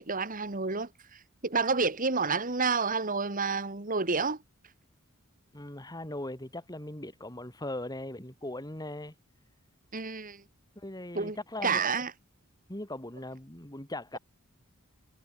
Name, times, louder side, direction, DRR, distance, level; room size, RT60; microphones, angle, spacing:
voice 1, 0.0-4.4 9.9-10.4 11.1-12.1, right 4 dB, 40° right, 2.0 m, -30 dB
voice 2, 5.5-9.1 10.8-11.8 12.7-14.2, left 1 dB, 20° left, 3.4 m, -39 dB
head